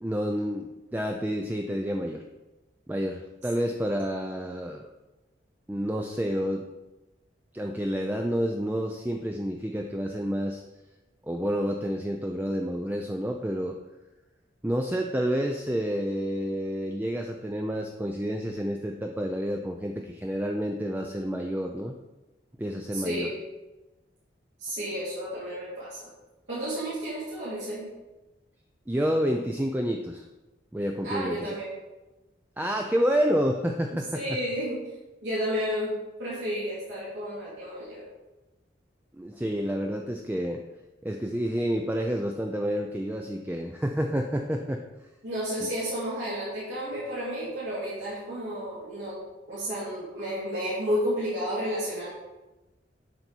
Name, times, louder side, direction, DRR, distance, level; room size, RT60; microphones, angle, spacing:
voice 1, 0.0-2.2 2.9-4.9 5.7-6.6 7.5-10.6 11.2-13.8 14.6-21.9 22.6-23.3 28.9-30.2 30.7-31.5 32.6-34.2 39.2-40.6 41.0-44.8 45.6-45.7, equal, 10° right, 3 dB, 0.4 m, -29 dB
voice 2, 22.9-23.4 24.6-26.0 26.5-27.8 31.0-31.7 33.9-34.8 35.2-38.1 45.2-49.2 49.5-52.1, equal, 75° right, -9 dB, 2.6 m, -32 dB
10.5 x 4.1 x 4.5 m, 1.1 s
head